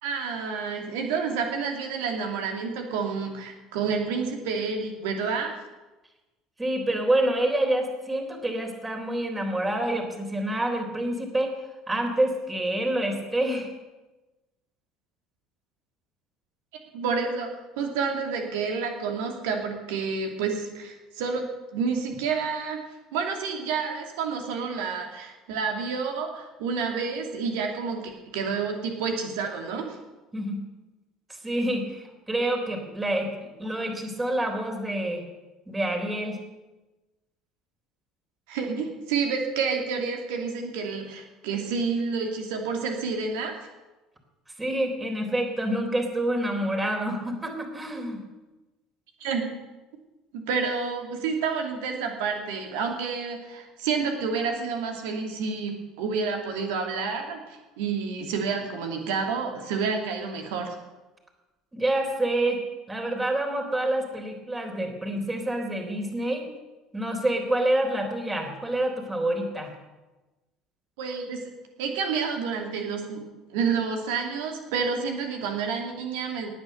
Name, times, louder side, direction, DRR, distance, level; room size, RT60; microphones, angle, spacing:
voice 1, 0.0-5.5 16.9-21.5 21.7-22.8 23.1-30.0 38.5-43.5 49.2-49.5 50.3-60.7 71.0-71.4 71.8-73.2 73.5-76.5, right 5 dB, 60° right, 3 dB, 2.7 m, -29 dB
voice 2, 6.6-11.6 11.9-13.7 30.3-30.6 31.3-33.3 33.6-35.2 35.7-36.4 44.6-48.2 61.7-62.6 62.9-66.5 66.9-69.7, right 1 dB, 15° right, 3 dB, 3.9 m, -27 dB
18.5 x 9.5 x 6.9 m, 1.1 s
figure-of-eight pair, 60°, 0 cm